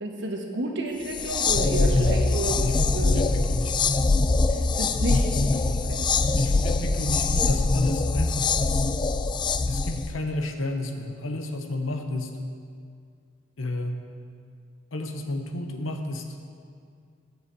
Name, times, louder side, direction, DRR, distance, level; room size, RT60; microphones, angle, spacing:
voice 1, 0.0-3.2 4.5-6.1 6.4-6.7, right 2 dB, 65° right, 2 dB, 1.3 m, -31 dB
sound 1, 1.1-10.1, left 3 dB, 25° left, 0.3 m, -23 dB
voice 2, 1.8-2.2 2.6-2.8 3.0-4.0 5.6-6.1 6.4-8.7 9.7-12.4 13.6-14.0 14.9-16.4, left 2 dB, 70° left, 5 dB, 1.0 m, -31 dB
7.4 x 7.2 x 7.5 m, 2.2 s
head